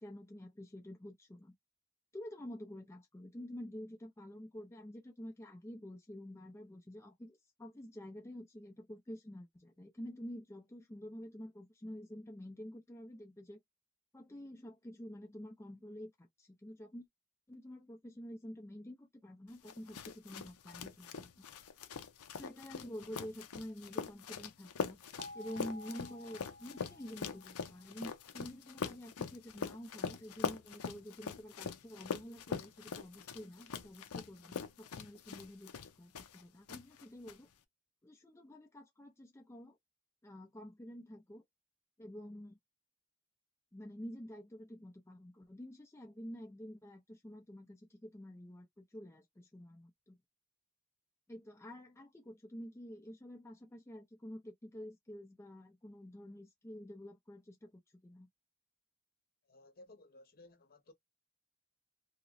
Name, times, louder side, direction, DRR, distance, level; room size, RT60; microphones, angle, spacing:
voice 1, 0.0-1.5 2.1-13.6 14.1-17.1 17.5-21.5 22.3-25.0 25.3-37.5 38.0-39.8 40.2-41.4 42.0-42.6 43.7-50.2 51.3-58.3, equal, 10° left, 0.5 m, -49 dB
sound 1, 19.7-36.4 36.7-37.3, left 5 dB, 75° left, 0.6 m, -43 dB
sound 2, 25.2-28.2, left 1 dB, 60° right, 0.9 m, -53 dB
voice 2, 59.5-60.9, left 2 dB, 45° left, 0.9 m, -58 dB
3.0 x 2.8 x 2.6 m
head